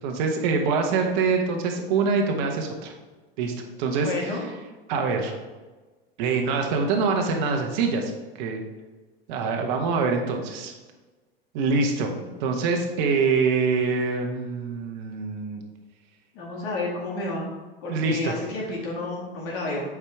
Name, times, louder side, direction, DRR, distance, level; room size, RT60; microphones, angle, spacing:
voice 1, 0.0-2.9 3.4-4.6 4.9-5.3 6.2-8.6 9.3-10.7 11.5-12.1 12.4-15.6 17.9-18.3, right 4 dB, 50° right, 3 dB, 1.1 m, -25 dB
voice 2, 4.0-4.4 16.3-17.4 17.8-19.8, left 2 dB, 45° left, -3 dB, 2.1 m, -30 dB
8.2 x 4.8 x 3.5 m, 1.3 s
figure-of-eight pair, 85°, 30 cm